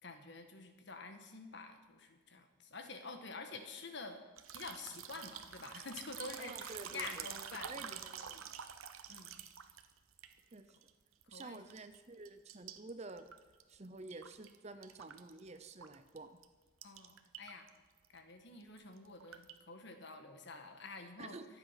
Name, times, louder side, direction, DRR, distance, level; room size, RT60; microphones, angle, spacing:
voice 1, 0.0-4.2 4.5-8.0 9.1-9.4 11.3-11.6 16.8-17.7 18.1-21.4, left 3 dB, 55° left, 6 dB, 1.6 m, -48 dB
sound 1, 4.4-10.9 11.2-12.0 12.2-14.6 14.8-16.2 16.4-16.5 16.8-17.7 18.0-18.2 18.6-19.6, right 9 dB, 85° right, 1.0 m, -48 dB
voice 2, 6.4-8.5 10.5-10.8 11.3-13.3 13.7-16.4 21.2-21.5, right 2 dB, 30° right, 10 dB, 0.7 m, -50 dB
24.0 x 8.5 x 5.9 m, 1.4 s
head